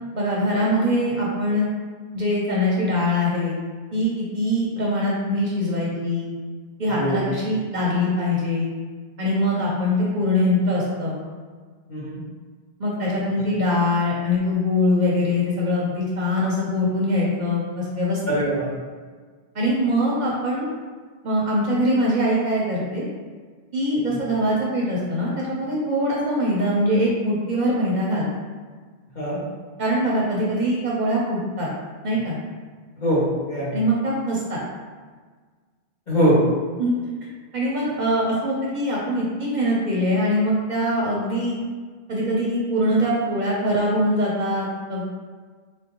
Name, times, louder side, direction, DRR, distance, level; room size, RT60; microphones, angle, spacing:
voice 1, 0.1-1.7 2.1-3.6 3.9-6.3 6.8-8.7 9.2-11.2 12.8-18.2 19.5-20.7 21.2-23.0 23.7-28.3 29.8-31.7 32.0-32.4 33.7-34.6 36.8-36.9 37.5-41.5 42.1-45.2, left 1 dB, 55° right, -5 dB, 0.7 m, -23 dB
voice 2, 18.3-18.7 29.1-29.4 33.0-33.8 36.1-36.4, equal, 50° left, -8 dB, 1.1 m, -22 dB
3.3 x 2.6 x 2.8 m, 1.5 s
omnidirectional pair, 1.0 m